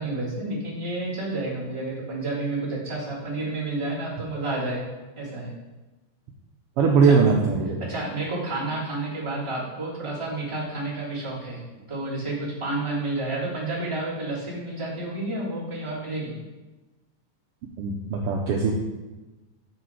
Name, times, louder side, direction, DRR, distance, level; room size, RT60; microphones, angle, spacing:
voice 1, 0.0-4.8 5.1-5.5 7.0-7.1 7.8-11.6 11.9-16.3, right 2 dB, 10° right, -8 dB, 2.7 m, -30 dB
voice 2, 6.8-7.8 17.8-18.7, right 5 dB, 70° right, 0 dB, 1.4 m, -20 dB
7.6 x 7.2 x 4.6 m, 1.2 s
omnidirectional pair, 3.4 m